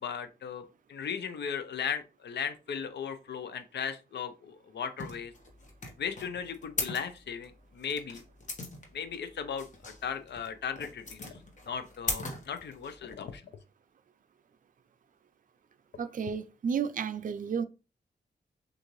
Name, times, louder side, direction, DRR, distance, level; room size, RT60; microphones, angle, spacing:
voice 1, 0.0-5.3 6.0-8.2 8.9-11.4 11.7-13.4, left 7 dB, 75° left, 0.6 m, -37 dB
sound 1, 5.0-13.1, left 2 dB, 45° left, 1.2 m, -39 dB
voice 2, 16.0-17.6, right 6 dB, 50° right, 0.4 m, -32 dB
6.3 x 2.5 x 3.0 m
wide cardioid pair, 125°, 18 cm